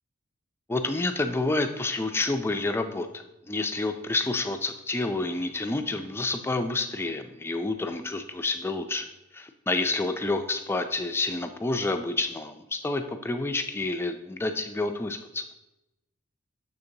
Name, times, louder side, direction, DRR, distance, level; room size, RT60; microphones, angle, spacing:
voice 1, 0.7-9.1 9.3-15.4, left 2 dB, 10° left, 7 dB, 0.3 m, -29 dB
6.6 x 6.4 x 2.7 m, 0.95 s
head